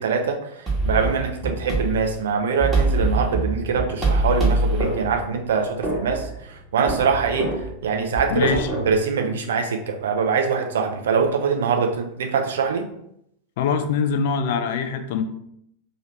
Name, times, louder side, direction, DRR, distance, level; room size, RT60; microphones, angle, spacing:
voice 1, 0.0-7.5 7.8-12.9, right 5 dB, 60° right, 4 dB, 0.4 m, -23 dB
sound 1, 0.7-8.9, right 2 dB, 15° right, 1.1 m, -25 dB
voice 2, 8.3-8.7 13.6-15.2, left 6 dB, 50° left, 8 dB, 0.3 m, -23 dB
2.8 x 2.8 x 2.9 m, 0.75 s
figure-of-eight pair, 90°, 0 cm